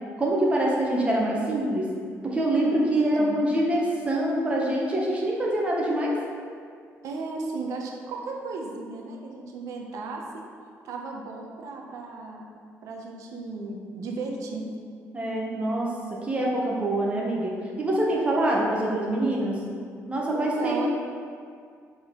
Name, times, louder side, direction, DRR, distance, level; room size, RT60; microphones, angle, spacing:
voice 1, 0.2-1.9 2.2-6.2 15.1-19.6 20.1-20.9, right 1 dB, 20° right, -3 dB, 1.1 m, -25 dB
voice 2, 2.6-3.3 7.0-10.4 10.8-12.4 12.8-14.7 20.3-20.9, right 3 dB, 75° right, 0 dB, 0.8 m, -35 dB
7.0 x 3.8 x 3.8 m, 2.2 s
cardioid pair, 135°, 6 cm